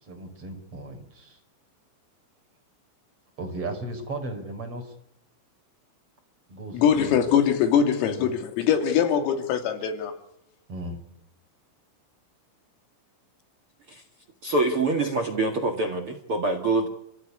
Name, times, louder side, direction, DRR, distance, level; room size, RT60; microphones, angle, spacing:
voice 1, 0.0-1.4 3.4-4.9 6.5-7.2 8.0-8.2 10.7-11.0, right 2 dB, 30° right, 5 dB, 5.5 m, -36 dB
voice 2, 6.7-10.1, left 8 dB, 85° left, 6 dB, 5.3 m, -22 dB
voice 3, 14.4-16.9, right 2 dB, 65° right, 7 dB, 1.4 m, -25 dB
29.0 x 15.5 x 9.8 m, 0.81 s
omnidirectional pair, 5.8 m